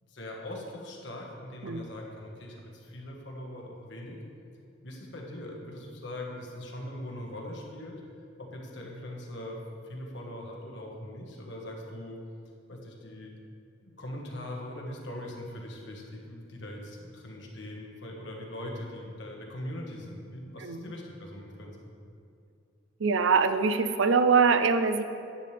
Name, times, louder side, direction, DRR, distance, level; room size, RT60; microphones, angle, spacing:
voice 1, 0.0-4.2 4.8-8.0 8.4-9.6 9.8-12.2 12.7-13.3 13.8-21.9, left 1 dB, 65° left, -1 dB, 1.5 m, -41 dB
voice 2, 23.0-25.0, right 5 dB, 75° right, 10 dB, 0.5 m, -23 dB
10.5 x 8.5 x 3.4 m, 2.5 s
head